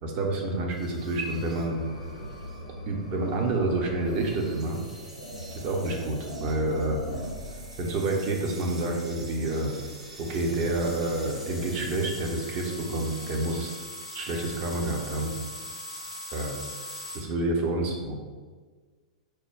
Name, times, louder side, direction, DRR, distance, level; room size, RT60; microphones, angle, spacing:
voice 1, 0.0-1.8 2.9-4.8 5.5-7.0 7.8-9.7 10.2-13.7 14.1-15.3 16.3-16.5 17.1-18.1, right 2 dB, 40° right, 1 dB, 0.8 m, -28 dB
sound 1, 0.7-17.2, equal, 85° right, 1.4 m, -40 dB
4.7 x 2.2 x 4.8 m, 1.4 s
figure-of-eight pair, 100°, 4 cm